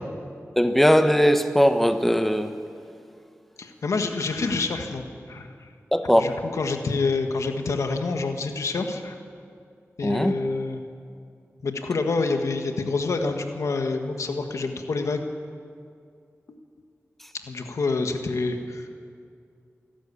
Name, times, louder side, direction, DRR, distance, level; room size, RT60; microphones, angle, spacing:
voice 1, 0.6-2.5 5.9-6.3 10.0-10.3, equal, 5° left, 8 dB, 1.1 m, -19 dB
voice 2, 3.6-5.7 6.1-9.1 10.0-10.8 11.6-15.3 17.5-18.9, left 3 dB, 90° left, 5 dB, 1.5 m, -27 dB
25.0 x 12.5 x 8.6 m, 2.3 s
wide cardioid pair, 80°, 5 cm